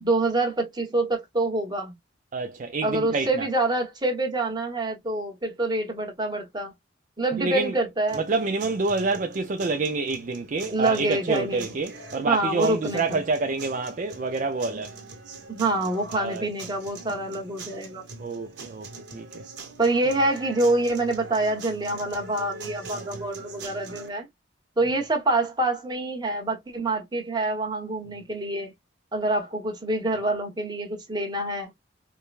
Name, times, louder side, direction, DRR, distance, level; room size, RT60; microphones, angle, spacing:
voice 1, 0.0-1.9 2.8-6.7 7.2-8.2 10.7-11.7 12.2-13.2 14.7-14.8 15.5-18.1 19.8-24.3 24.8-28.7 29.1-31.7, right 2 dB, 20° right, 1.2 m, -26 dB
voice 2, 2.3-3.5 7.4-7.7 8.1-15.0 16.1-16.5 18.2-19.5 22.9-23.2, right 3 dB, 40° right, 0.4 m, -28 dB
sound 1, 8.1-24.1, right 3 dB, 60° right, 1.5 m, -43 dB
4.7 x 2.2 x 2.4 m
head